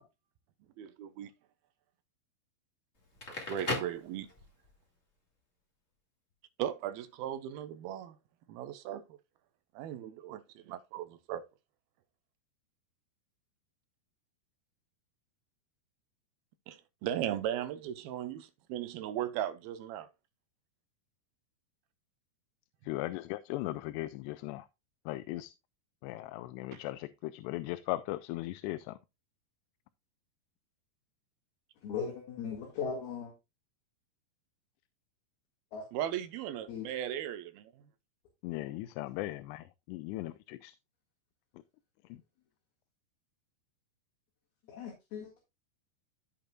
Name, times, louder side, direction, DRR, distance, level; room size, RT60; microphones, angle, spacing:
voice 1, 0.8-1.3 3.5-4.3 6.6-8.2 8.5-9.0 9.8-11.4 16.7-20.1 26.7-26.8 35.9-37.7, right 11 dB, 75° right, 2.4 m, -37 dB
Crackle, 3.0-4.7, left 2 dB, 25° left, 1.5 m, -37 dB
voice 2, 22.8-24.7 25.1-25.5 26.0-29.0 38.4-40.7 42.1-42.2, left 17 dB, 85° left, 2.7 m, -38 dB
voice 3, 31.8-33.3 35.7-35.9 36.7-36.9 44.7-45.4, left 6 dB, 70° left, 3.7 m, -38 dB
15.5 x 5.3 x 2.3 m
omnidirectional pair, 4.8 m